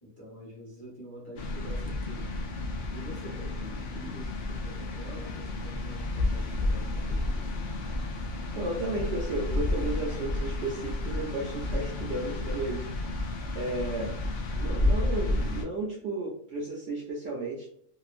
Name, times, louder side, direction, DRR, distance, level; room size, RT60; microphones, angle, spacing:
voice 1, 0.0-2.4 2.9-7.6, equal, 15° left, -6 dB, 1.3 m, -46 dB
sound 1, 1.4-15.6, left 2 dB, 70° left, 0.4 m, -31 dB
voice 2, 8.5-13.3 13.5-14.2 14.5-17.7, right 2 dB, 60° right, -3 dB, 0.8 m, -33 dB
2.8 x 2.4 x 2.4 m, 0.67 s
omnidirectional pair, 1.4 m